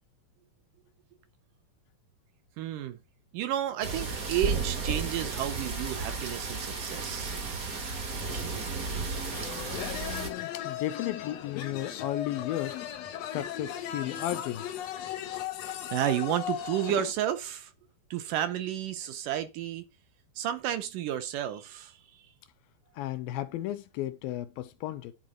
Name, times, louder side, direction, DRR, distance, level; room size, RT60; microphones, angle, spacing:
voice 1, 2.6-3.0 3.3-7.4 15.3-15.4 15.7-17.7 18.1-19.9 20.4-22.0, right 11 dB, 75° right, 2.2 m, -31 dB
sound 1, 3.8-10.3, right 4 dB, 45° right, 1.2 m, -33 dB
sound 2, 9.3-17.1, left 10 dB, 70° left, 1.6 m, -37 dB
voice 2, 9.7-12.8 13.3-14.7 23.0-25.1, left 14 dB, 85° left, 2.6 m, -34 dB
11.0 x 4.0 x 6.4 m
omnidirectional pair, 4.2 m